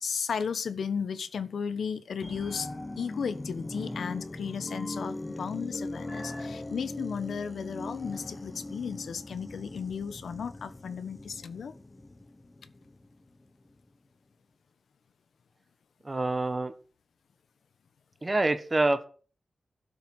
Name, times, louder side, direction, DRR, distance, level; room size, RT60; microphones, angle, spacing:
voice 1, 0.0-2.7 3.0-11.7, left 6 dB, 80° left, 13 dB, 1.3 m, -34 dB
sound 1, 2.2-13.2 13.7-13.8, left 2 dB, 15° left, 1.0 m, -40 dB
voice 2, 16.0-16.7 18.2-19.1, right 2 dB, 20° right, 9 dB, 1.4 m, -26 dB
12.5 x 6.8 x 9.2 m, 0.39 s
wide cardioid pair, 175°, 0 cm